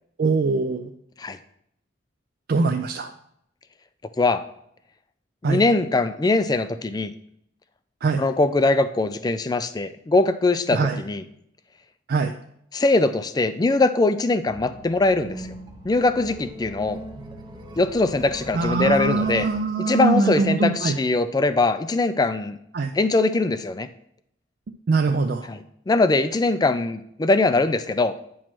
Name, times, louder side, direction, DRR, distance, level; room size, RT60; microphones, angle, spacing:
voice 1, 0.2-0.9 2.5-3.1 5.4-5.6 8.0-8.2 10.7-11.0 12.1-12.3 18.5-21.0 22.7-22.9 24.9-25.5, right 4 dB, 50° right, 5 dB, 0.4 m, -22 dB
voice 2, 5.4-7.1 8.2-11.2 12.7-15.6 15.8-17.0 17.8-19.5 19.8-22.6 22.9-23.9 25.5-28.1, left 2 dB, 20° left, 11 dB, 0.3 m, -22 dB
sound 1, 14.5-19.5, right 1 dB, 25° right, 0.7 m, -38 dB
8.7 x 3.1 x 6.0 m, 0.73 s
head